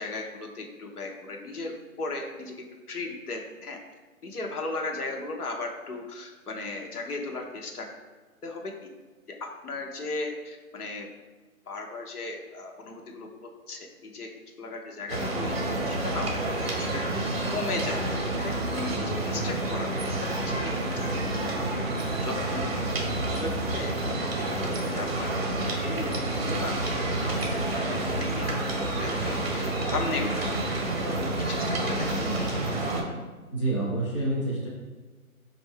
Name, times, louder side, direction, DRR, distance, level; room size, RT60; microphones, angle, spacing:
voice 1, 0.0-1.7 2.0-2.5 2.9-3.8 4.2-7.8 8.4-8.9 9.4-11.1 11.7-13.3 13.7-14.3 14.6-15.6 15.8-18.0 18.4-19.9 20.2-21.5 22.2-22.8 23.3-23.9 24.2-25.5 25.8-26.7 27.7-28.5 29.0-30.3 31.0-32.5, left 3 dB, 90° left, 1 dB, 0.9 m, -36 dB
sound 1, 15.1-33.0, right 2 dB, 45° right, 0.6 m, -29 dB
voice 2, 33.5-34.7, right 2 dB, 20° left, -7 dB, 0.6 m, -27 dB
4.4 x 2.6 x 3.2 m, 1.3 s
hypercardioid pair, 160°, 43 cm